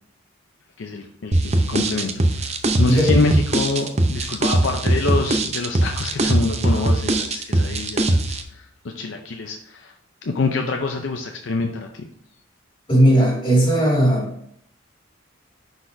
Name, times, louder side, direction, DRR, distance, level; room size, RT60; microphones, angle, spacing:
voice 1, 0.8-9.9 10.2-12.1, left 3 dB, 65° left, 3 dB, 0.6 m, -26 dB
sound 1, 1.3-8.4, right 1 dB, 35° right, 0.6 m, -20 dB
voice 2, 2.9-3.2 12.9-14.3, equal, 25° left, -3 dB, 2.1 m, -17 dB
9.8 x 4.1 x 2.6 m, 0.68 s
head